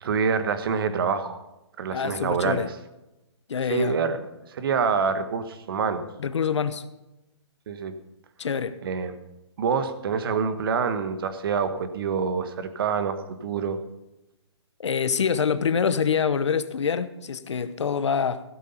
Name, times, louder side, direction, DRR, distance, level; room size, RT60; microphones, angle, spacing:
voice 1, 0.0-1.4 1.8-2.7 3.7-4.2 4.5-6.0 7.7-7.9 8.8-9.1 9.6-13.8, right 6 dB, 55° right, 10 dB, 1.4 m, -26 dB
voice 2, 1.9-2.7 3.5-4.0 6.2-6.8 8.4-8.8 14.8-18.4, left 6 dB, 80° left, 13 dB, 1.0 m, -25 dB
15.5 x 8.4 x 5.5 m, 0.97 s
hypercardioid pair, 155°, 15 cm